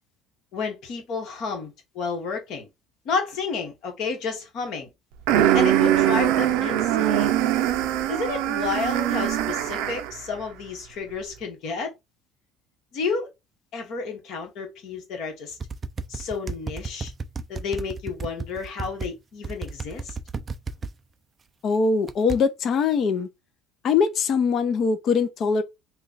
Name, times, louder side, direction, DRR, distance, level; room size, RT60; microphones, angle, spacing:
voice 1, 0.5-2.7 3.0-4.9 5.5-7.4 8.1-11.9 12.9-13.3 13.7-15.6 16.1-17.1 17.5-20.1, left 4 dB, 60° left, 1.3 m, -31 dB
sound 1, 5.3-10.2, right 12 dB, 85° right, 0.5 m, -22 dB
sound 2, 15.6-19.1 19.4-20.9 22.1-22.4, right 4 dB, 25° right, 0.3 m, -33 dB
voice 2, 21.6-23.3 23.8-25.6, left 5 dB, 45° left, 0.5 m, -22 dB
3.1 x 2.3 x 3.9 m
cardioid pair, 145°, 0 cm